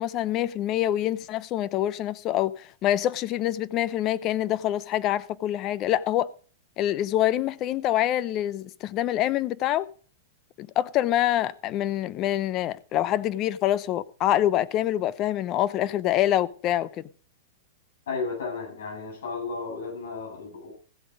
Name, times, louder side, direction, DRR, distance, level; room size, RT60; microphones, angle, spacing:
voice 1, 0.0-6.3 6.8-9.9 10.6-17.0, left 12 dB, 35° left, 0.8 m, -26 dB
voice 2, 18.1-20.7, left 4 dB, 75° left, 7.9 m, -33 dB
15.5 x 7.8 x 5.1 m
hypercardioid pair, 120°, 0 cm